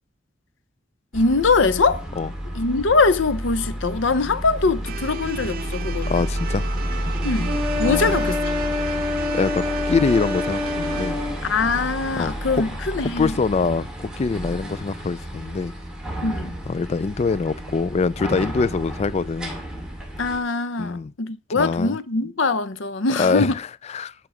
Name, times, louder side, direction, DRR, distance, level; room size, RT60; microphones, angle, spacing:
voice 1, 1.1-2.0 2.5-6.1 7.2-8.5 11.4-13.4 16.2-16.6 20.2-23.6, left 3 dB, 70° left, 0.7 m, -22 dB
sound 1, 1.1-20.4, equal, 5° right, 2.3 m, -31 dB
sound 2, 4.8-13.0, right 6 dB, 50° right, 0.6 m, -37 dB
voice 2, 6.1-6.6 7.8-8.3 9.3-11.2 12.1-12.6 13.0-15.7 16.7-19.5 20.8-21.1 21.5-22.0 23.2-24.1, left 4 dB, 35° left, 0.3 m, -24 dB
sound 3, 7.4-11.4, left 3 dB, 20° right, 1.7 m, -27 dB
11.0 x 4.5 x 4.9 m
head